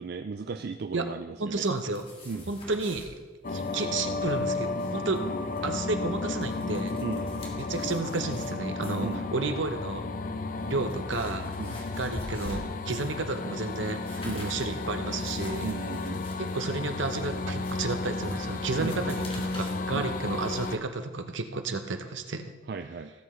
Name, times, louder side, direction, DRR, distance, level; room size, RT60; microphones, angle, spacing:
voice 1, 0.0-1.7 2.3-2.5 5.2-5.3 7.0-7.2 9.0-9.2 11.6-11.7 14.2-14.4 15.6-16.2 18.8-19.1 19.9-20.1 22.7-23.1, right 4 dB, 55° right, 7 dB, 0.4 m, -35 dB
voice 2, 1.4-2.0 2.5-3.0 3.5-5.2 5.6-7.0 7.7-10.0 10.6-11.6 12.0-15.7 16.4-22.5, right 3 dB, 75° right, 7 dB, 0.9 m, -32 dB
sound 1, 1.6-3.1 3.5-3.8 4.1-4.2 4.6-5.7 6.2-8.5 8.8-9.2 9.9-10.0 10.5-13.2 13.6-19.8, left 1 dB, 30° left, 2.0 m, -46 dB
sound 2, 3.4-20.8, left 3 dB, 45° left, 0.6 m, -33 dB
17.0 x 8.0 x 3.2 m, 1.2 s
head